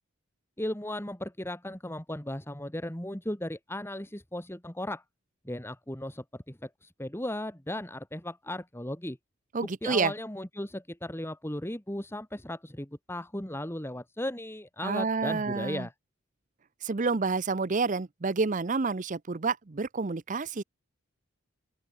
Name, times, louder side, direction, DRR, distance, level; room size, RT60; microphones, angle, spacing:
voice 1, 0.6-5.0 5.5-9.2 9.8-15.9, left 1 dB, 10° left, 1.9 m, -36 dB
voice 2, 9.5-10.1 14.8-15.9 16.8-20.6, right 4 dB, 40° right, 0.6 m, -29 dB
open air
head